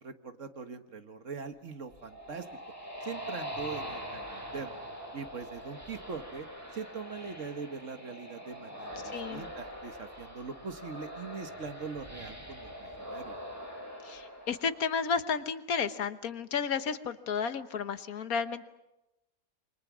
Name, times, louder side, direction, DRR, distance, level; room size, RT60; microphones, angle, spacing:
voice 1, 0.0-2.4 3.0-4.8 5.1-6.5 6.7-13.4, right 5 dB, 55° right, 8 dB, 1.6 m, -42 dB
sound 1, 1.7-15.3, equal, 10° left, 5.5 m, -43 dB
voice 2, 9.1-9.4 14.0-18.7, left 6 dB, 75° left, 11 dB, 1.5 m, -32 dB
27.5 x 25.0 x 6.2 m, 0.95 s
omnidirectional pair, 1.5 m